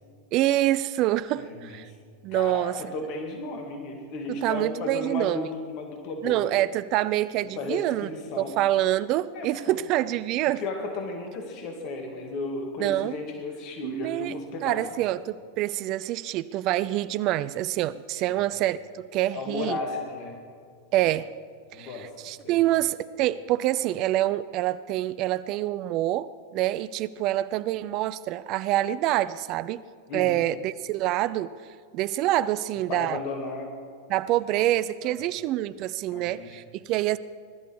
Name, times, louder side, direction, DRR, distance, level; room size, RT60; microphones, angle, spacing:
voice 1, 0.3-1.9 2.2-2.7 4.4-5.4 6.2-8.1 8.4-10.6 12.8-13.1 13.8-14.4 14.6-19.8 20.9-21.3 21.8-29.8 30.1-31.5 31.9-33.2 34.1-37.2, right 14 dB, 40° right, 16 dB, 0.4 m, -26 dB
voice 2, 1.4-2.0 2.3-6.6 7.6-8.6 9.3-9.8 10.6-14.8 18.1-18.4 19.3-20.4 21.7-22.1 22.4-22.6 30.1-30.4 32.9-33.7 35.0-35.2 36.1-36.5, left 2 dB, 40° left, 4 dB, 2.1 m, -34 dB
23.0 x 12.0 x 4.8 m, 2.1 s
figure-of-eight pair, 90°, 0 cm